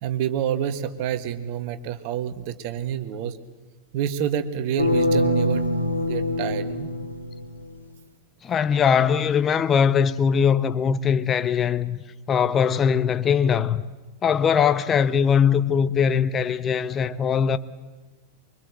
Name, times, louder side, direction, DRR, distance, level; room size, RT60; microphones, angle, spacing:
voice 1, 0.0-3.4 3.9-5.7 6.0-6.9, right 9 dB, 45° right, 1.6 m, -28 dB
sound 1, 4.8-7.7, left 1 dB, 85° left, 2.7 m, -24 dB
voice 2, 8.4-12.0 12.3-13.8 14.2-17.6, left 7 dB, 25° left, 0.8 m, -21 dB
24.5 x 23.5 x 7.8 m
figure-of-eight pair, 90°, 0 cm